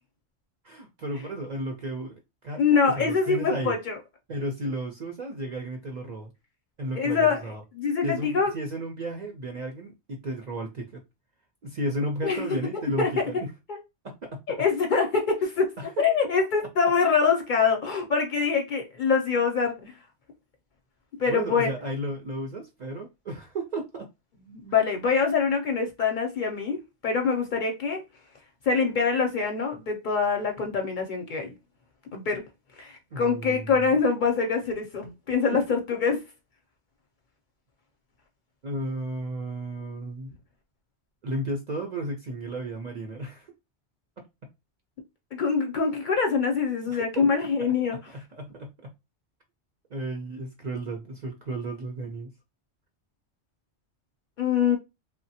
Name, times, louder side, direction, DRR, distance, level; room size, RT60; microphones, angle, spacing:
voice 1, 0.6-3.7 4.3-6.3 6.8-7.6 8.0-11.0 11.6-13.5 14.0-14.6 15.8-16.0 21.3-24.1 33.1-33.9 38.6-40.3 41.2-43.5 46.9-47.2 47.9-48.9 49.9-52.3, right 1 dB, 55° right, 0.5 m, -34 dB
voice 2, 2.6-4.0 6.9-7.4 7.8-8.5 12.2-13.1 13.7-13.8 14.6-19.9 21.2-21.7 24.5-28.0 28.6-31.5 32.1-32.4 32.8-36.2 45.3-48.0 54.4-54.8, left 5 dB, 55° left, 0.6 m, -24 dB
3.1 x 2.1 x 2.7 m
omnidirectional pair, 1.2 m